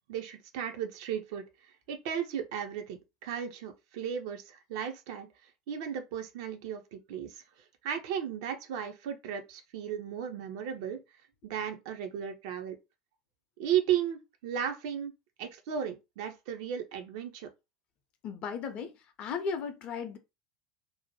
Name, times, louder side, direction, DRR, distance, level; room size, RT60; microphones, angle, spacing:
voice 1, 0.1-1.4 1.9-7.4 7.8-11.0 11.4-12.8 13.6-15.1 15.4-17.5, right 9 dB, 60° right, 0.5 m, -35 dB
voice 2, 18.2-20.2, left 5 dB, 40° left, 0.6 m, -36 dB
2.7 x 2.1 x 2.9 m
figure-of-eight pair, 75°, 3 cm